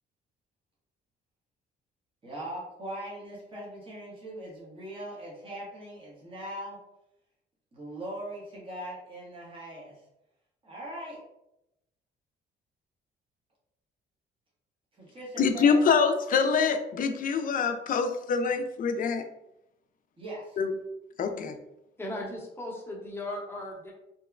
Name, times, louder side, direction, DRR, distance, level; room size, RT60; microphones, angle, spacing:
voice 1, 2.2-6.8 7.7-9.9 10.6-11.2 15.0-15.9 20.2-20.6, right 1 dB, 25° right, 0.9 m, -40 dB
voice 2, 15.4-19.2 20.6-20.7 21.2-21.6, left 5 dB, 45° left, 0.4 m, -25 dB
voice 3, 22.0-23.9, left 1 dB, 10° left, 0.8 m, -37 dB
2.8 x 2.1 x 2.4 m
cardioid pair, 90°, 20 cm